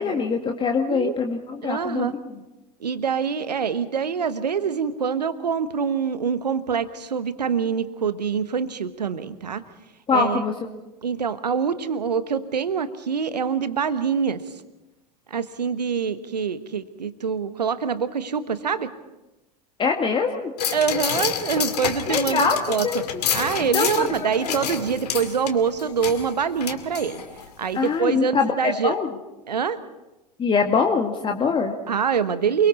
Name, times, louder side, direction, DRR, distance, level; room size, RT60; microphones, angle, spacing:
voice 1, 0.0-2.2 10.1-10.5 19.8-20.5 22.1-23.2 23.7-24.1 24.4-24.6 27.7-29.1 30.4-31.8, left 5 dB, 25° left, 3 dB, 1.8 m, -23 dB
voice 2, 1.6-2.1 2.8-9.6 10.1-10.4 11.0-14.4 15.3-18.9 20.7-22.9 23.3-27.2 27.6-28.9 29.5-29.8 31.9-32.7, right 6 dB, 75° right, 13 dB, 1.2 m, -25 dB
sound 1, 20.6-27.5 27.9-28.0, left 8 dB, 70° left, 2.2 m, -29 dB
28.5 x 22.5 x 4.2 m, 1.0 s
figure-of-eight pair, 80°, 21 cm